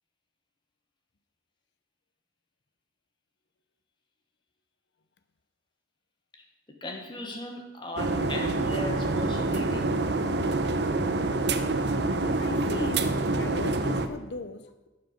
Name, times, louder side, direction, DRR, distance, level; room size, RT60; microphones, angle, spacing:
voice 1, 6.8-10.0, left 1 dB, 25° left, 1.2 m, -38 dB
sound 1, 8.0-14.1, right 2 dB, 70° right, 0.8 m, -27 dB
voice 2, 12.4-14.9, left 2 dB, 70° left, 0.8 m, -38 dB
11.5 x 7.9 x 5.1 m
head